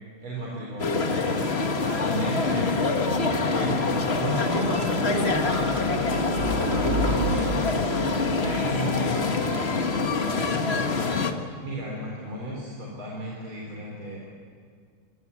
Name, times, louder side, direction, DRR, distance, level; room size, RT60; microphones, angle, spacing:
voice 1, 0.2-9.7 10.0-11.1 11.6-14.2, right 1 dB, 75° right, -2 dB, 5.0 m, -35 dB
sound 1, 0.8-11.3, left 3 dB, 35° left, 1.5 m, -25 dB
sound 2, 3.2-11.4, right 1 dB, 40° right, 3.9 m, -33 dB
26.0 x 23.5 x 8.6 m, 2.1 s
omnidirectional pair, 2.3 m